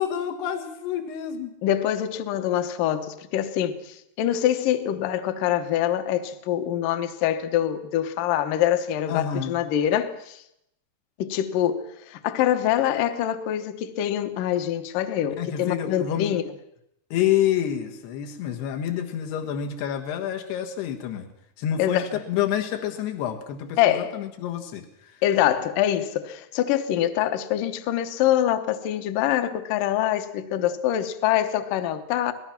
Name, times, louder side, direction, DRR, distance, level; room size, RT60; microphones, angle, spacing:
voice 1, 0.0-1.5 9.1-9.5 15.4-16.4 17.1-21.3 21.6-25.2, left 10 dB, 80° left, 3.6 m, -28 dB
voice 2, 1.6-10.4 11.2-16.4 21.8-22.0 23.8-24.1 25.2-32.3, left 11 dB, 65° left, 2.4 m, -24 dB
25.5 x 18.5 x 5.9 m
omnidirectional pair, 4.7 m